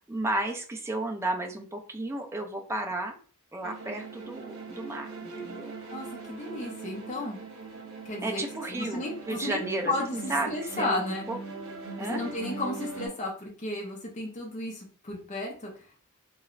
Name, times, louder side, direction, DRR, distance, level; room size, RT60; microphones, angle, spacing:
voice 1, 0.0-3.2 3.5-5.7 8.2-11.4 12.0-12.2, right 2 dB, 10° right, 2 dB, 0.4 m, -33 dB
sound 1, 3.6-13.1, right 3 dB, 60° right, 1.0 m, -41 dB
voice 2, 5.9-7.4 8.0-8.4 8.7-9.6 9.9-11.3 12.0-15.7, left 2 dB, 35° left, -1 dB, 0.6 m, -33 dB
3.1 x 2.9 x 2.5 m, 0.42 s
head